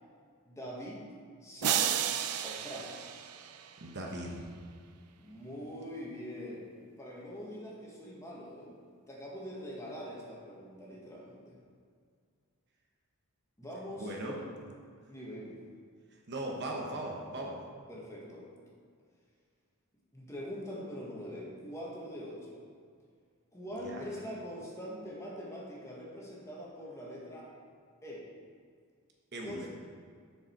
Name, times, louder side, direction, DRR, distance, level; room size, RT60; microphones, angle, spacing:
voice 1, 0.4-1.0 1.4-2.0 2.4-3.0 5.2-6.7 7.0-8.7 9.1-11.6 13.6-14.5 15.1-15.6 17.9-18.5 20.1-22.6 23.5-27.5 28.0-28.2 29.3-29.6, equal, 15° left, -4 dB, 1.5 m, -43 dB
sound 1, 1.6-4.0, right 10 dB, 85° right, 0.5 m, -32 dB
voice 2, 3.8-4.4 14.0-14.4 16.1-17.6 23.7-24.1 29.3-29.7, right 1 dB, 50° right, 0 dB, 1.0 m, -39 dB
7.1 x 6.5 x 4.5 m, 2.1 s
head